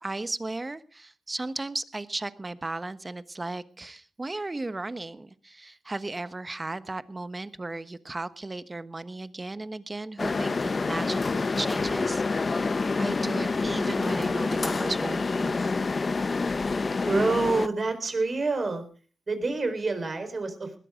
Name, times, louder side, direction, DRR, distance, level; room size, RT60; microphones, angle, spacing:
voice 1, 0.0-12.7 13.0-15.7, right 2 dB, 30° right, 13 dB, 1.2 m, -35 dB
sound 1, 10.2-17.7, left 4 dB, 45° left, 0.8 m, -27 dB
voice 2, 16.9-18.8 19.3-20.8, right 3 dB, 50° right, 8 dB, 4.5 m, -27 dB
20.0 x 13.0 x 3.8 m, 0.38 s
cardioid pair, 50°, 0 cm